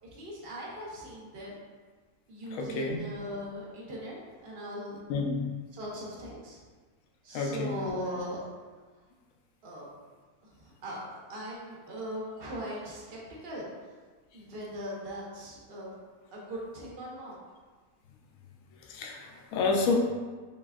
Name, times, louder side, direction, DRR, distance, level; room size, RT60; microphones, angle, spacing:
voice 1, 0.0-1.6 2.3-5.0 5.7-6.6 7.2-8.4 9.6-9.9 10.4-13.7 14.3-15.9 16.3-17.4, equal, 45° right, -4 dB, 1.0 m, -39 dB
voice 2, 2.5-3.0 5.1-5.4 7.3-7.7 18.9-20.0, left 3 dB, 70° left, 1 dB, 0.9 m, -29 dB
4.1 x 3.3 x 2.4 m, 1.4 s
omnidirectional pair, 1.6 m